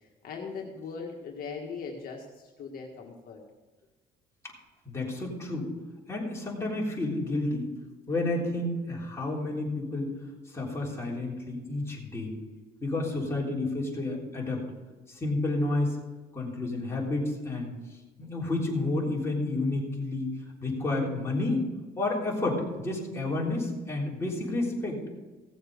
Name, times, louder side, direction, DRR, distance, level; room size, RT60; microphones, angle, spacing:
voice 1, 0.0-3.4, left 5 dB, 55° left, 0 dB, 1.7 m, -40 dB
voice 2, 4.9-5.7 6.1-7.7 8.1-10.1 10.5-12.4 12.8-14.6 15.1-16.0 16.3-17.7 18.2-20.3 20.6-21.7 22.0-25.0, left 2 dB, 15° left, -4 dB, 3.7 m, -30 dB
17.0 x 7.2 x 5.2 m, 1.2 s
cardioid pair, 140°, 17 cm